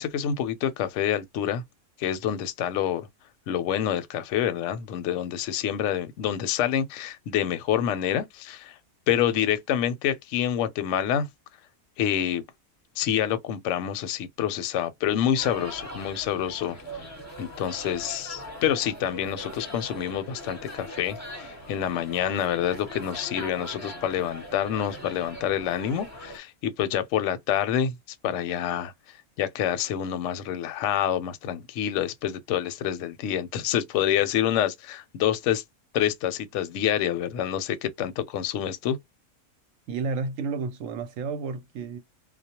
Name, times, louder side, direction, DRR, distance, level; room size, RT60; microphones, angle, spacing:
voice 1, 0.0-1.6 2.0-3.1 3.5-8.7 9.1-11.3 12.0-12.4 13.0-16.8 17.4-27.9 28.2-28.9 29.4-35.6 35.9-39.0, left 10 dB, 70° left, 0.8 m, -27 dB
sound 1, 15.4-26.4, equal, 15° left, 0.6 m, -41 dB
voice 2, 39.9-42.0, right 4 dB, 70° right, 0.9 m, -31 dB
2.3 x 2.0 x 2.8 m
omnidirectional pair, 1.5 m